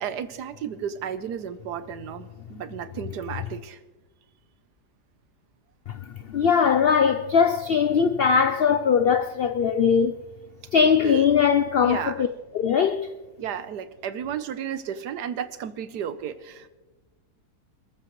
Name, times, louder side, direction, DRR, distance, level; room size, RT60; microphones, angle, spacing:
voice 1, 0.0-3.8 11.0-11.3 11.8-12.3 13.4-16.7, right 8 dB, 85° right, 1.4 m, -33 dB
voice 2, 6.3-10.2 10.7-12.3 12.5-13.1, left 6 dB, 90° left, 0.5 m, -20 dB
27.0 x 13.5 x 3.1 m
omnidirectional pair, 1.7 m